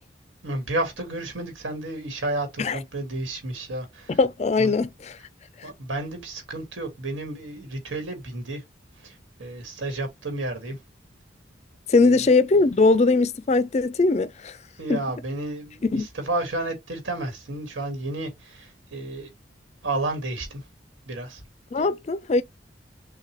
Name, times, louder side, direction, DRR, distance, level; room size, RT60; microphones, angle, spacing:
voice 1, 0.4-4.2 4.6-4.8 5.6-8.6 9.0-10.8 12.0-12.3 14.8-19.3 19.8-20.7 21.1-21.4 21.7-21.9, right 2 dB, 85° right, 1.5 m, -32 dB
voice 2, 4.1-5.2 5.6-5.7 11.9-14.6 14.9-15.0 15.8-16.1 21.7-22.4, left 3 dB, 35° left, 0.4 m, -21 dB
6.5 x 2.2 x 3.0 m
head